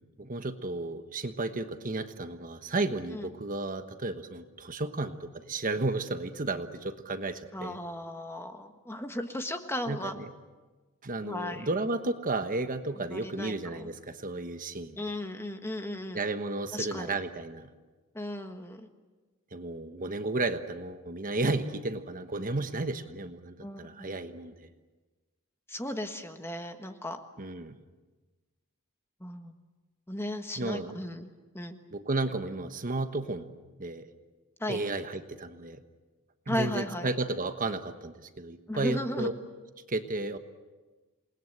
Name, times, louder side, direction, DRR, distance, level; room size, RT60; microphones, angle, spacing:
voice 1, 0.2-7.8 9.9-10.3 11.0-15.0 16.1-17.7 19.5-24.7 27.4-27.8 30.6-31.0 31.9-33.5 33.8-34.1 34.7-35.8 36.5-39.3 39.9-40.4, right 2 dB, 40° right, 8 dB, 1.2 m, -33 dB
voice 2, 7.5-10.2 11.2-11.7 13.0-13.9 15.0-16.2 16.7-17.1 18.1-18.9 23.6-24.1 25.7-27.2 29.2-29.5 30.1-31.3 31.5-31.8 34.6-34.8 36.5-37.1 38.7-39.3, left 1 dB, 10° left, 6 dB, 1.4 m, -36 dB
28.0 x 20.0 x 8.0 m, 1.3 s
head